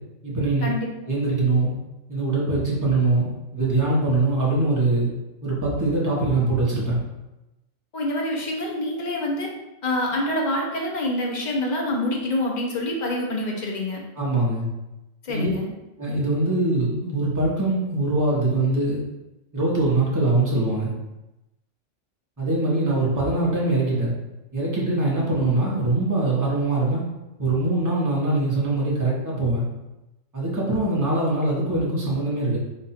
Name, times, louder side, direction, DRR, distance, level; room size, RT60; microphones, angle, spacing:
voice 1, 0.2-0.7 1.0-1.7 2.1-5.1 5.4-7.0 14.2-14.7 15.3-15.5 16.0-19.0 19.5-20.9 22.4-24.1 24.5-27.0 27.4-29.7 30.3-32.6, right 2 dB, 15° right, -5 dB, 1.0 m, -22 dB
voice 2, 7.9-9.5 9.8-14.0 15.2-15.7, left 1 dB, 40° left, -1 dB, 0.8 m, -26 dB
4.2 x 2.6 x 4.2 m, 0.98 s
omnidirectional pair, 1.4 m